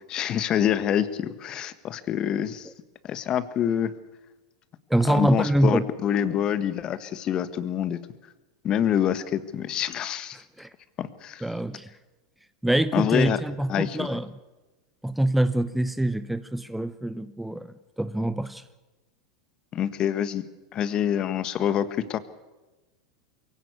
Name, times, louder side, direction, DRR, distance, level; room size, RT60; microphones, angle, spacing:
voice 1, 0.0-2.7 3.0-4.0 5.0-8.0 8.6-10.4 11.0-11.4 12.9-13.4 13.7-14.2 19.7-20.4 20.7-22.2, left 9 dB, 35° left, 14 dB, 1.5 m, -26 dB
voice 2, 4.9-5.8 10.6-10.7 11.4-11.9 12.6-14.3 15.0-17.7 18.0-18.6, right 1 dB, 5° right, 14 dB, 0.8 m, -24 dB
23.0 x 16.5 x 8.3 m, 1.1 s
hypercardioid pair, 90°, 2 cm